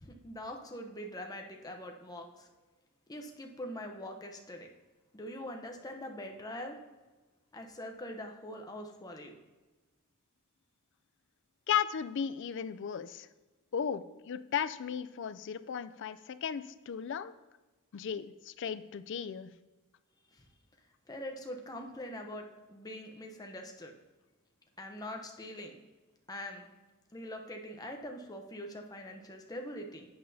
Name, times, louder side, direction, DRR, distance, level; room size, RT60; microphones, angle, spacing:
voice 1, 0.0-2.5 3.1-4.7 5.1-6.8 7.5-9.4 20.3-20.4 21.1-23.9 24.8-25.8 26.3-26.7 27.1-30.1, left 1 dB, 15° left, 3 dB, 0.7 m, -43 dB
voice 2, 11.7-13.3 13.7-17.3 17.9-19.5, left 8 dB, 55° left, 14 dB, 0.4 m, -35 dB
11.0 x 8.5 x 2.7 m, 1.2 s
head